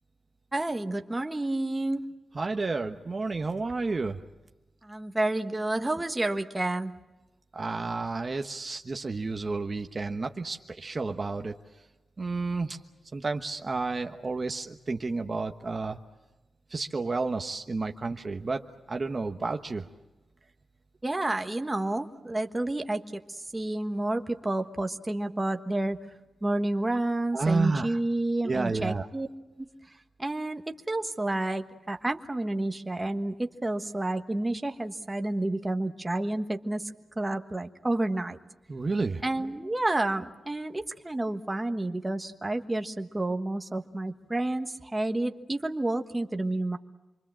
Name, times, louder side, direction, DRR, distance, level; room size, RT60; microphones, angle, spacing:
voice 1, 0.5-2.0 4.8-6.9 21.0-23.0 23.3-26.0 26.4-29.3 29.6-29.7 30.2-30.6 30.9-38.4 39.2-46.8, right 2 dB, 15° right, 6 dB, 1.4 m, -30 dB
voice 2, 2.3-4.2 7.5-11.5 12.2-12.8 13.1-16.0 16.7-19.9 27.3-28.0 28.4-29.1 38.7-39.2, right 3 dB, 35° right, 5 dB, 1.1 m, -31 dB
27.5 x 24.0 x 7.5 m, 1.1 s
wide cardioid pair, 120°, 0 cm